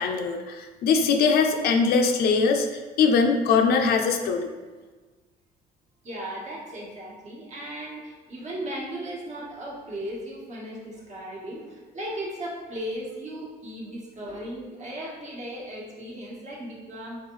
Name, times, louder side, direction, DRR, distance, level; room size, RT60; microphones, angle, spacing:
voice 1, 0.0-2.7 3.0-4.5, left 5 dB, 70° left, 5 dB, 0.5 m, -21 dB
voice 2, 6.0-17.2, right 1 dB, 45° right, -4 dB, 1.2 m, -36 dB
3.7 x 3.5 x 3.1 m, 1.3 s
cardioid pair, 110°, 17 cm